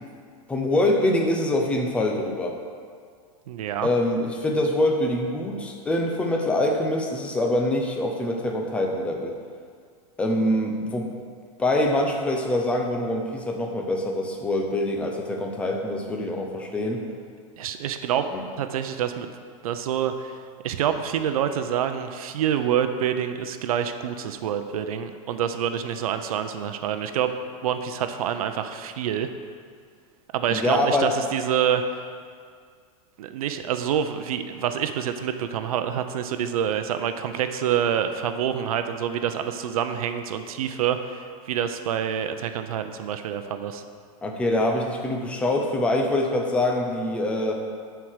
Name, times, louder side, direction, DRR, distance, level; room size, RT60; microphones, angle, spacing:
voice 1, 0.5-2.6 3.8-9.3 10.2-11.1 11.6-17.0 18.2-18.4 30.5-31.1 44.2-47.6, left 1 dB, 5° left, 1 dB, 0.6 m, -24 dB
voice 2, 3.5-3.9 17.6-18.2 18.6-19.3 19.6-20.4 20.6-27.3 27.6-29.3 30.3-31.8 33.2-43.8, right 9 dB, 85° right, 8 dB, 0.6 m, -27 dB
9.5 x 4.6 x 6.4 m, 2.1 s
supercardioid pair, 165°, 18 cm